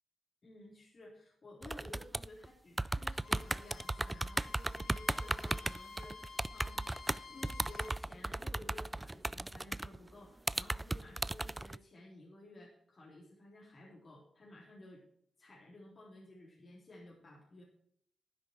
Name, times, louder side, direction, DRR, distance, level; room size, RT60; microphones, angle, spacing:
voice 1, 0.4-6.8 7.3-15.0 15.4-17.6, left 1 dB, 45° left, -3 dB, 3.8 m, -54 dB
sound 1, 1.6-2.5 2.8-10.1 10.5-11.8, right 2 dB, 15° right, 0.4 m, -36 dB
Bowed string instrument, 3.0-8.0, left 5 dB, 75° left, 1.9 m, -52 dB
11.5 x 10.5 x 4.7 m, 0.66 s
cardioid pair, 85°, 0 cm